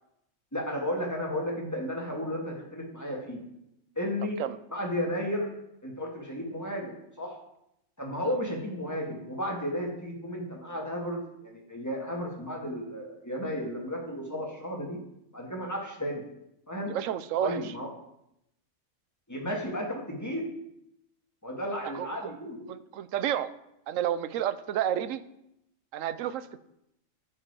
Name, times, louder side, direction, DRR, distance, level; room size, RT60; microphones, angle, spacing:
voice 1, 0.5-3.4 3.9-4.4 4.7-5.5 5.8-7.4 8.0-15.0 15.3-16.2 16.7-16.9 17.4-17.9 19.3-20.5 21.4-22.6, equal, 15° left, -1 dB, 1.9 m, -33 dB
voice 2, 16.9-17.7 21.9-22.3 22.7-23.5 23.9-25.2 25.9-26.6, right 10 dB, 85° right, 14 dB, 1.0 m, -30 dB
14.5 x 5.0 x 4.7 m, 0.82 s
omnidirectional pair, 1.3 m